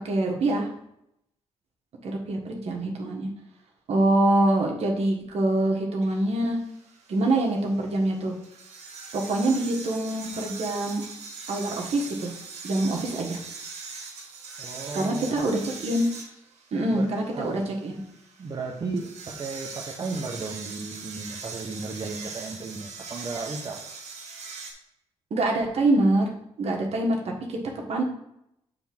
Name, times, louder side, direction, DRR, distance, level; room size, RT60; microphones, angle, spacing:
voice 1, 0.0-0.7 2.0-3.3 3.9-6.6 7.1-8.3 9.1-11.0 11.5-12.3 12.6-13.4 14.9-16.1 16.7-18.0 25.3-26.3 26.6-27.2 27.5-27.6 27.9-28.0, right 2 dB, 65° right, 0 dB, 1.5 m, -25 dB
sound 1, 6.0-24.7, right 4 dB, 85° right, 1.4 m, -41 dB
voice 2, 14.6-15.5 16.9-17.7 18.4-23.8, right 3 dB, 40° right, 0 dB, 1.0 m, -35 dB
6.9 x 3.5 x 6.0 m, 0.80 s
cardioid pair, 85°, 11 cm